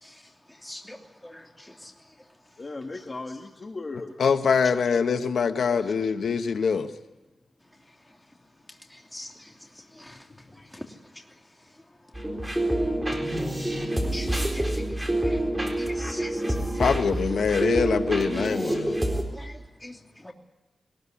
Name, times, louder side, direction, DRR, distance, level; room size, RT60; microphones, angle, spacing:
voice 1, 0.0-3.0 8.0-8.2 8.7-12.3 12.7-13.0 13.4-15.5 15.8-17.0 19.3-20.3, left 1 dB, 10° left, 3.2 m, -45 dB
voice 2, 2.6-4.2 16.7-16.9, left 3 dB, 35° left, 1.6 m, -37 dB
voice 3, 4.2-6.9 16.8-19.0, left 6 dB, 90° left, 1.2 m, -24 dB
sound 1, 12.1-19.2, right 1 dB, 10° right, 4.1 m, -27 dB
22.0 x 20.0 x 9.9 m
wide cardioid pair, 105°, 0 cm